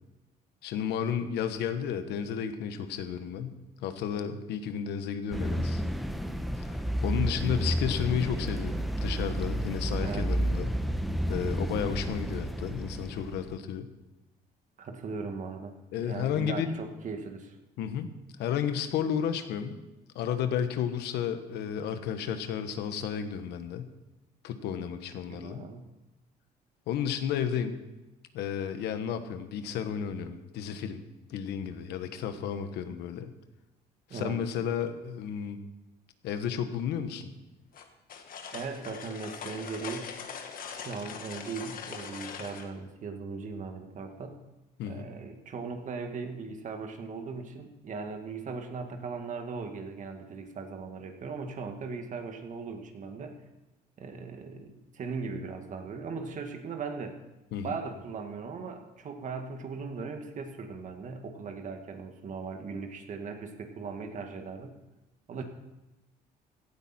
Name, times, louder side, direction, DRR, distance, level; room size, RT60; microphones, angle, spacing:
voice 1, 0.6-5.8 6.6-10.7 11.3-13.9 15.9-16.8 17.8-19.8 20.1-23.9 24.4-25.6 26.9-27.8 28.3-31.0 31.3-33.3 34.1-35.6 36.2-37.3 44.8-45.1 57.5-57.8, left 8 dB, 80° left, 9 dB, 1.3 m, -32 dB
sound 1, 5.3-13.6, equal, ahead, 0.9 m, -31 dB
voice 2, 14.8-15.7 16.0-17.6 25.3-25.9 34.1-34.4 38.5-40.1 40.7-44.4 44.9-53.4 54.0-57.2 57.6-64.8 65.3-65.4, right 4 dB, 50° right, 5 dB, 2.0 m, -38 dB
sound 2, 37.7-42.7, left 6 dB, 55° left, 1.8 m, -41 dB
17.0 x 12.5 x 4.4 m, 1.0 s
cardioid pair, 110°, 17 cm